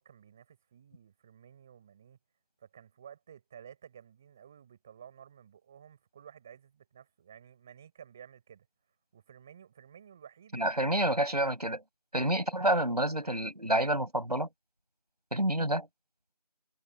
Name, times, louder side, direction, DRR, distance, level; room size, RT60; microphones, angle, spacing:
voice 1, 0.0-2.2 2.6-8.7 9.1-11.1 12.2-13.6, right 8 dB, 5° right, 5.1 m, -53 dB
voice 2, 10.5-11.8 12.1-14.5 15.3-15.9, right 1 dB, 80° right, 5.4 m, -28 dB
figure-of-eight pair, 175°, 20 cm